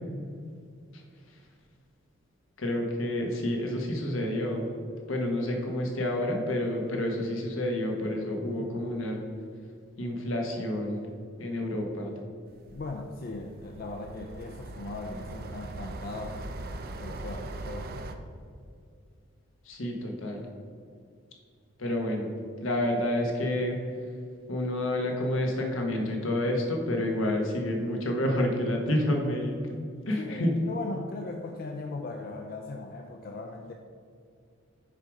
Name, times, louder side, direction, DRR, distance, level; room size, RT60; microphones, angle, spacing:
voice 1, 2.6-4.7 5.1-9.2 10.0-11.1 11.4-12.1 19.6-20.5 21.8-22.3 22.6-23.8 24.5-30.6, left 1 dB, 75° left, 1 dB, 1.1 m, -29 dB
sound 1, 12.5-18.2, right 2 dB, 45° right, 0.4 m, -40 dB
voice 2, 12.7-16.4 16.8-17.9 30.2-33.7, left 3 dB, 45° left, 3 dB, 0.4 m, -39 dB
6.6 x 4.8 x 5.1 m, 2.3 s
head